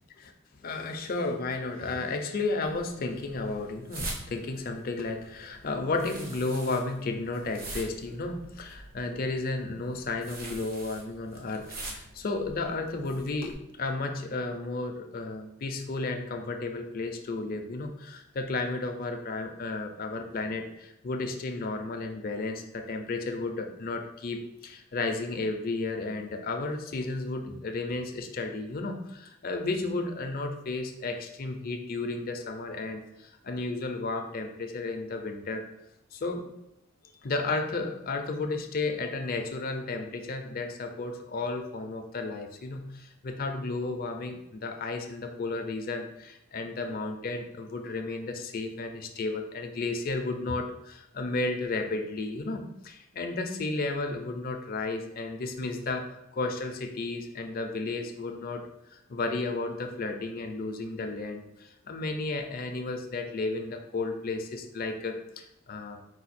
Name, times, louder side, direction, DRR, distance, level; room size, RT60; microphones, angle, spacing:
voice 1, 0.2-35.7 36.1-36.4 37.2-58.6 58.9-66.0, left 3 dB, 45° left, 5 dB, 0.5 m, -33 dB
sound 1, 2.6-13.5, right 2 dB, 45° right, 0.9 m, -44 dB
4.9 x 2.3 x 4.2 m, 0.84 s
head